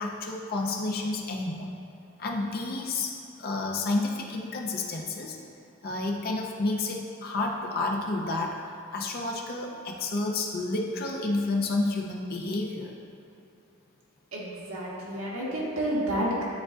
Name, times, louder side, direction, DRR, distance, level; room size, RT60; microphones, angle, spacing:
voice 1, 0.0-1.7 2.2-3.1 3.4-5.4 5.8-8.6 8.9-13.0, left 2 dB, 45° left, 0 dB, 0.6 m, -30 dB
voice 2, 14.3-16.4, right 1 dB, 75° right, -6 dB, 1.5 m, -30 dB
10.5 x 3.7 x 2.5 m, 2.7 s
head